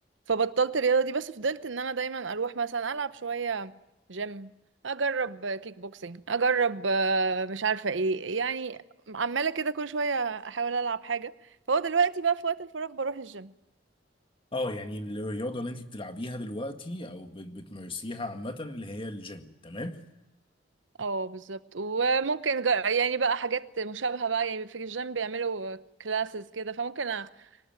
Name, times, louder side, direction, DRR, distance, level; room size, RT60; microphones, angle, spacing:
voice 1, 0.3-3.7 4.1-4.5 4.8-8.8 9.1-11.3 11.7-13.5 21.0-27.3, right 5 dB, 90° right, 0.9 m, -29 dB
voice 2, 14.5-20.0, left 1 dB, 30° left, 1.9 m, -36 dB
24.0 x 19.5 x 9.1 m
head